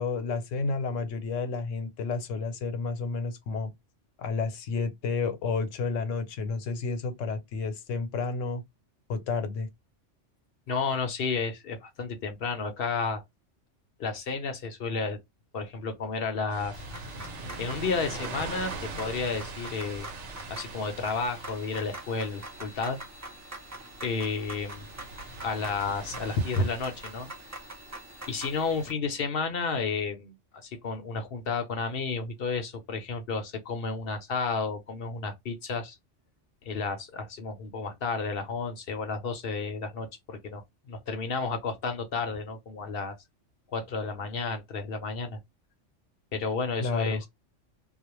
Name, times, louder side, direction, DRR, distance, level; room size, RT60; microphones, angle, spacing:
voice 1, 0.0-3.7 4.2-8.6 9.1-9.7 46.8-47.2, left 4 dB, 85° left, 1.0 m, -31 dB
voice 2, 10.7-13.2 14.0-15.2 15.5-16.7 17.6-20.1 20.5-23.0 24.0-24.9 25.4-27.3 28.3-30.3 30.6-36.0 36.6-40.6 40.9-43.1 43.7-45.4 46.3-47.3, left 4 dB, 60° left, 0.7 m, -31 dB
sound 1, 16.5-27.7, right 3 dB, 70° right, 1.0 m, -42 dB
sound 2, 16.7-28.9, right 1 dB, 25° right, 0.3 m, -44 dB
2.4 x 2.1 x 2.9 m
omnidirectional pair, 1.3 m